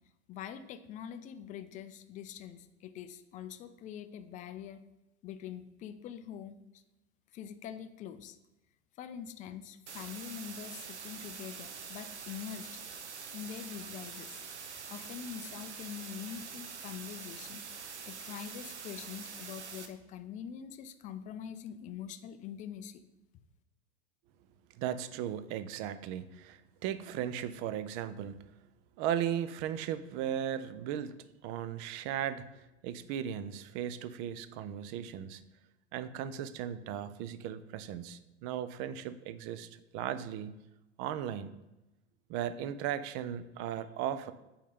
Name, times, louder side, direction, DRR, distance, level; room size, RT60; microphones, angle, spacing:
voice 1, 0.3-4.8 5.2-6.6 7.3-8.4 9.0-12.7 13.3-14.4 14.9-17.6 18.1-23.0, left 9 dB, 25° left, 10 dB, 0.4 m, -44 dB
sound 1, 9.9-19.9, right 6 dB, 80° right, 0.8 m, -45 dB
voice 2, 24.8-28.4 29.0-31.2 31.4-32.4 32.8-35.4 35.9-40.6 41.0-41.6 42.3-44.3, right 10 dB, 35° right, 13 dB, 0.5 m, -36 dB
8.3 x 3.8 x 3.6 m, 0.96 s
figure-of-eight pair, 85°, 34 cm